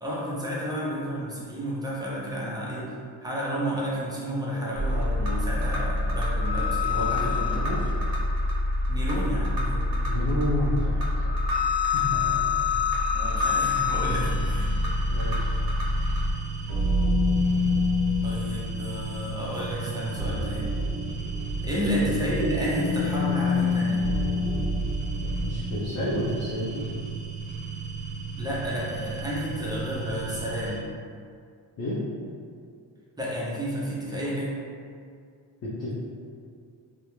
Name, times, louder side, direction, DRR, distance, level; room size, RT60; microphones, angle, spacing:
voice 1, 0.0-2.9 3.2-7.6 8.9-9.9 13.1-14.7 18.2-20.7 21.6-24.0 28.4-30.8 33.2-34.5, equal, 10° right, -7 dB, 0.5 m, -31 dB
sound 1, 4.7-16.3, left 3 dB, 55° right, 0.7 m, -26 dB
voice 2, 6.9-7.9 10.0-11.3 11.9-12.8 15.1-15.5 21.8-22.0 25.3-27.0 31.8-32.0 35.6-35.9, left 1 dB, 40° left, -9 dB, 0.5 m, -31 dB
sound 2, 14.2-30.8, right 5 dB, 20° left, 1.2 m, -36 dB
sound 3, 16.7-25.9, left 2 dB, 90° right, 0.6 m, -27 dB
2.3 x 2.1 x 3.0 m, 2.2 s
cardioid pair, 115°, 44 cm